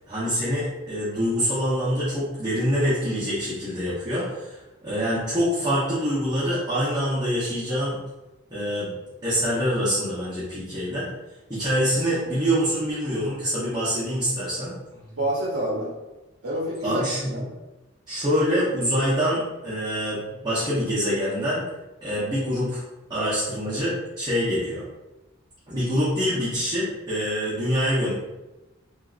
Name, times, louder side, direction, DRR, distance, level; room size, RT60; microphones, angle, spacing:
voice 1, 0.1-8.0 8.5-8.9 9.2-11.1 11.5-14.7 16.8-17.3 18.1-21.6 22.0-22.8 23.1-24.8 25.7-28.1, equal, 20° right, -12 dB, 1.0 m, -25 dB
voice 2, 15.1-15.9 16.4-17.5, right 1 dB, 75° right, -6 dB, 0.9 m, -28 dB
3.6 x 2.7 x 2.5 m, 1.0 s
head